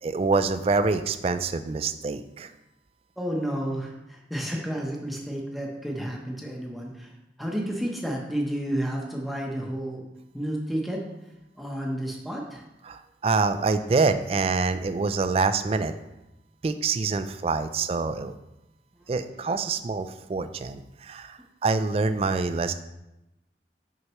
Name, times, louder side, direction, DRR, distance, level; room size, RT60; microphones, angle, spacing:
voice 1, 0.0-2.5 12.8-15.9 16.6-18.3 19.1-22.7, right 4 dB, 35° right, 10 dB, 0.3 m, -26 dB
voice 2, 3.2-7.1 7.4-10.0 10.3-11.0 11.6-12.6 19.0-19.1, right 1 dB, ahead, -1 dB, 0.8 m, -31 dB
6.4 x 5.7 x 3.0 m, 0.93 s
head